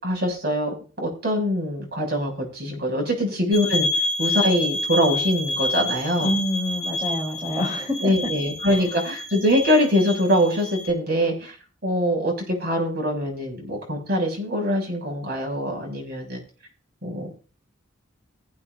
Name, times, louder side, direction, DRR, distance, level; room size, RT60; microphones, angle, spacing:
voice 1, 0.0-3.9 4.2-6.3 8.0-11.5 11.8-16.4 17.0-17.3, equal, 55° right, 1 dB, 6.7 m, -23 dB
sound 1, 3.5-10.9, left 2 dB, 50° left, 3.5 m, -28 dB
voice 2, 6.2-8.1 8.7-8.8, equal, 20° right, -2 dB, 3.7 m, -27 dB
23.0 x 8.6 x 2.6 m, 0.38 s
head